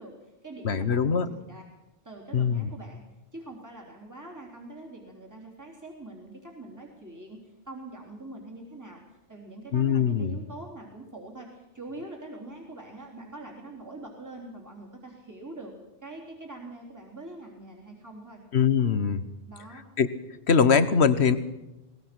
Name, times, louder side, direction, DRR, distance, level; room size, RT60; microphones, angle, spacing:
voice 1, 0.0-1.6 2.0-3.0 3.3-15.8 16.0-18.4 19.5-19.8, right 2 dB, 15° right, -1 dB, 3.6 m, -44 dB
voice 2, 0.6-1.3 2.3-2.7 9.7-10.4 18.5-19.2 20.0-20.1 20.5-21.4, left 6 dB, 65° left, 13 dB, 1.4 m, -22 dB
22.0 x 20.0 x 6.1 m, 0.97 s
omnidirectional pair, 1.2 m